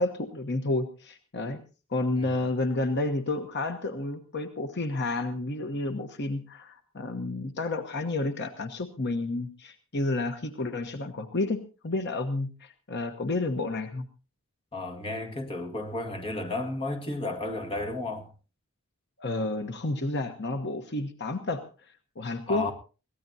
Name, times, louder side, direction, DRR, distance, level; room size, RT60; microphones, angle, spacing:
voice 1, 0.0-1.6 1.9-14.1 19.2-22.7, left 2 dB, 50° left, 1.1 m, -31 dB
voice 2, 14.7-18.3 22.5-22.7, left 2 dB, 25° left, 1.8 m, -33 dB
22.5 x 17.0 x 2.8 m
head